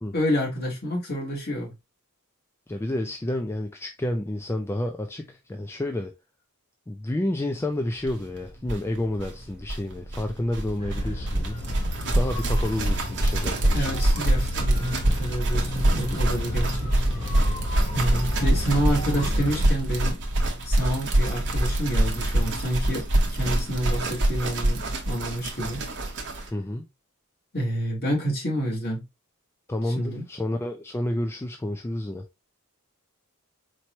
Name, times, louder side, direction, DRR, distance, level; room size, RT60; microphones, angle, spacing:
voice 1, 0.1-1.7 13.7-16.9 17.9-20.2 20.6-23.0 23.3-25.8 27.5-29.0 30.0-30.2, equal, 45° left, 2.2 m, -28 dB
voice 2, 2.7-6.1 6.9-11.6 12.1-13.9 17.4-17.6 26.5-26.8 29.7-32.2, left 1 dB, 10° left, 0.3 m, -30 dB
sound 1, 8.1-8.2 8.4-8.5 8.6-26.5, right 1 dB, 55° right, 1.0 m, -25 dB
sound 2, 10.8-19.7, left 1 dB, 30° left, 2.4 m, -33 dB
4.5 x 3.0 x 2.9 m
head